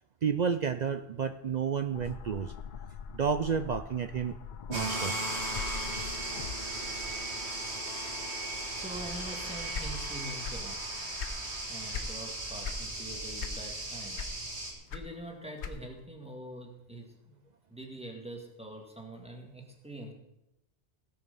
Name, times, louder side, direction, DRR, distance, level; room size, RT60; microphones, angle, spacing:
voice 1, 0.2-2.5 3.1-4.4 4.7-5.1, right 7 dB, 55° right, 10 dB, 0.5 m, -31 dB
sound 1, 1.9-6.9, left 7 dB, 55° left, 0.6 m, -43 dB
sound 2, 4.7-14.7, right 2 dB, 85° right, 2.5 m, -36 dB
voice 2, 8.7-11.2 11.7-14.2 14.9-17.4 17.7-20.1, right 1 dB, 5° right, 1 dB, 2.0 m, -44 dB
sound 3, 9.7-10.7 11.0-12.2 12.6-12.9 13.4-13.8 14.1-16.0, left 6 dB, 80° left, 1.2 m, -38 dB
17.0 x 6.4 x 5.4 m, 0.85 s
omnidirectional pair, 1.1 m